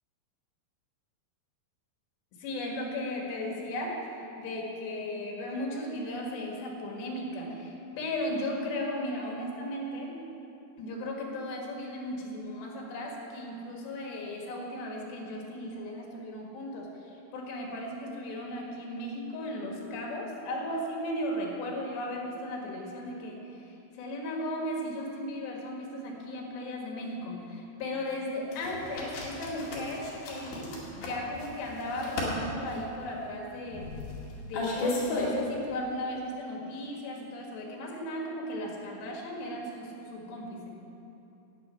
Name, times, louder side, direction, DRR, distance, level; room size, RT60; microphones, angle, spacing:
voice 1, 2.3-4.0 4.4-10.3 10.8-33.9 34.4-40.7, left 1 dB, 75° left, -1 dB, 3.9 m, -36 dB
sound 1, 28.5-35.7, left 2 dB, 55° left, 3.3 m, -35 dB
10.0 x 8.3 x 9.2 m, 2.8 s
omnidirectional pair, 5.0 m